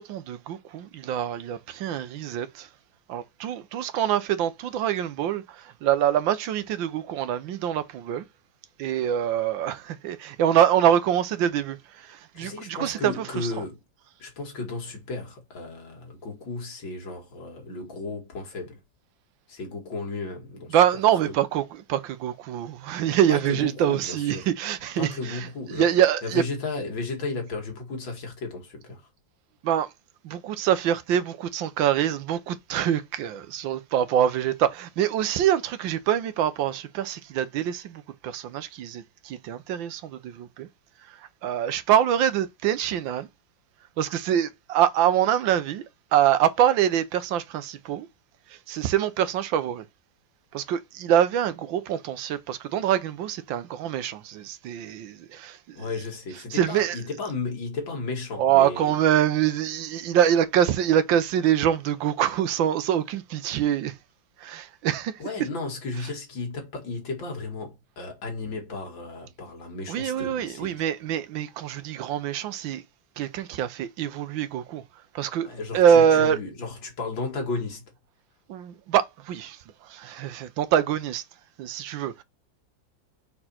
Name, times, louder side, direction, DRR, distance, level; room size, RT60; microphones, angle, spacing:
voice 1, 0.0-2.7 3.1-5.4 5.8-8.2 8.8-11.8 12.1-13.1 20.7-21.6 21.9-26.4 29.6-29.9 30.2-40.7 41.4-43.3 44.0-45.8 46.1-48.1 48.7-49.8 50.5-55.6 56.5-57.0 58.4-63.9 64.4-65.1 69.9-72.8 73.2-74.8 75.1-75.5 75.7-76.4 78.5-79.6 79.9-81.2 81.6-82.2, right 10 dB, 85° right, 1.5 m, -24 dB
voice 2, 12.3-13.8 14.2-18.8 19.5-21.0 23.3-24.5 25.0-29.1 55.7-58.9 65.2-70.8 75.4-77.9, left 3 dB, 85° left, 2.9 m, -34 dB
5.5 x 4.4 x 4.3 m
omnidirectional pair, 2.1 m